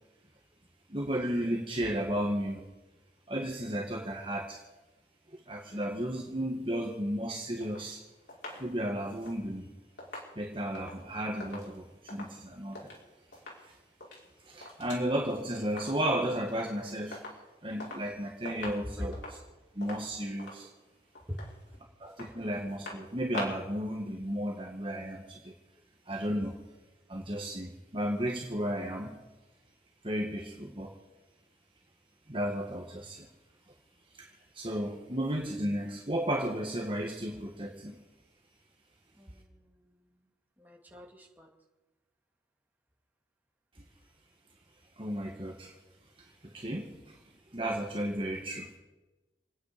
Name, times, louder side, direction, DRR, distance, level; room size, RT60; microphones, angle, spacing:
voice 1, 0.9-2.6 3.3-4.6 5.3-8.0 8.5-9.7 10.4-12.9 13.6-13.7 14.4-17.2 17.6-19.1 19.7-20.7 22.0-25.5 26.1-26.6 27.1-29.2 30.0-30.9 32.3-33.3 34.1-38.0 45.0-45.7 46.4-47.2 47.5-48.7, equal, 30° right, -1 dB, 1.7 m, -34 dB
sound 1, 7.6-13.0 13.3-13.7 13.9-15.1 15.3-16.2 16.5-16.8 17.1-18.1 18.4-23.8 24.1-24.2, left 2 dB, 90° left, 5.3 m, -45 dB
voice 2, 21.3-21.8 26.4-26.5 39.2-40.3 40.6-41.5, equal, 10° right, -1 dB, 2.4 m, -44 dB
28.0 x 9.6 x 5.2 m, 1.1 s
head